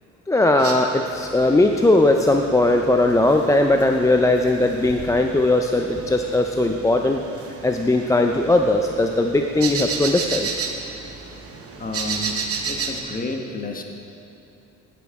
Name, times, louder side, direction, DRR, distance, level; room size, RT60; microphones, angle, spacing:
voice 1, 0.3-10.5, left 2 dB, 10° left, 3 dB, 0.4 m, -19 dB
sound 1, 0.6-13.0, right 5 dB, 50° right, 1.0 m, -33 dB
voice 2, 11.8-12.4 12.6-13.8, left 2 dB, 30° left, 3 dB, 1.1 m, -30 dB
9.2 x 8.2 x 4.7 m, 2.7 s
cardioid pair, 90°, 30 cm